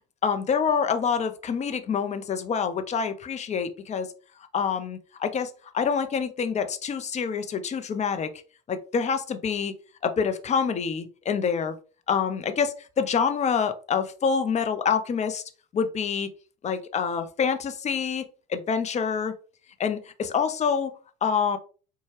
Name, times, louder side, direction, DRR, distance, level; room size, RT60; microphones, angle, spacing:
voice 1, 0.2-4.1 4.5-8.3 8.7-9.7 10.0-11.7 12.1-15.4 15.7-16.3 16.6-18.2 18.5-19.3 19.8-20.9 21.2-21.6, left 6 dB, 35° left, 9 dB, 0.6 m, -26 dB
4.2 x 2.2 x 3.2 m, 0.37 s
hypercardioid pair, 65°, 20 cm